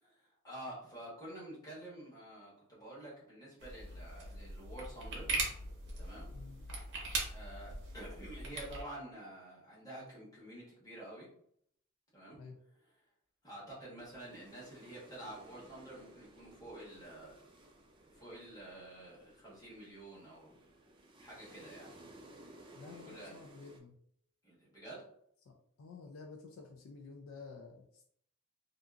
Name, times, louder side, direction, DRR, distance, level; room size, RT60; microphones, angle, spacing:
voice 1, 0.0-5.3 6.0-6.3 6.7-6.9 7.3-11.3 12.1-12.4 13.4-17.4 18.1-20.7 21.2-21.9 22.9-23.3 24.4-25.1, right 1 dB, 15° left, -7 dB, 1.2 m, -49 dB
sound 1, 3.6-8.8, right 3 dB, 55° right, 0.7 m, -40 dB
voice 2, 6.3-6.6 12.4-12.6 22.8-23.9 25.4-28.0, left 4 dB, 65° left, 2 dB, 0.4 m, -51 dB
sound 2, 14.0-23.8, right 1 dB, 20° right, 0.3 m, -58 dB
2.7 x 2.5 x 2.3 m, 0.67 s
head